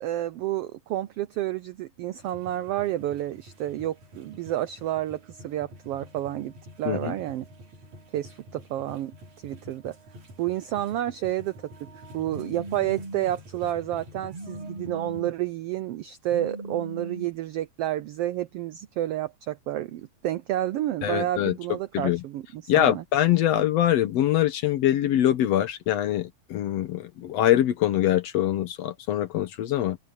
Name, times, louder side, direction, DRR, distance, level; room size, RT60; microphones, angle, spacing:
voice 1, 0.0-7.5 8.1-9.1 9.4-10.0 10.4-11.5 12.1-23.0, right 13 dB, 90° right, 1.3 m, -30 dB
sound 1, 2.2-15.2, equal, 65° right, 6.1 m, -48 dB
Telephone, 12.3-13.3 14.3-15.3 16.3-17.3, right 2 dB, 20° right, 2.0 m, -38 dB
voice 2, 21.0-21.6 21.9-22.2 22.7-30.0, left 12 dB, 70° left, 1.9 m, -23 dB
open air
omnidirectional pair, 3.5 m